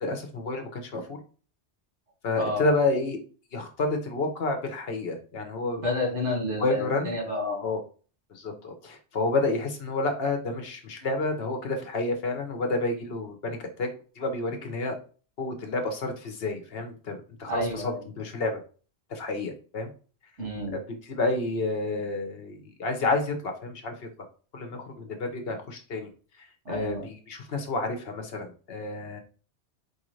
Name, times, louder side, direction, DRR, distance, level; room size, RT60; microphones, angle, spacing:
voice 1, 0.0-1.2 2.2-3.2 3.5-5.8 6.6-7.1 7.6-7.8 8.3-13.9 14.2-15.0 15.4-18.6 19.1-19.9 21.0-24.1 24.5-26.1 26.4-29.2, left 2 dB, 60° left, 4 dB, 1.0 m, -30 dB
voice 2, 5.8-7.6 17.5-18.0 20.4-20.7 26.7-27.1, left 2 dB, 90° right, -1 dB, 2.3 m, -30 dB
4.6 x 2.5 x 3.1 m, 0.38 s
omnidirectional pair, 1.2 m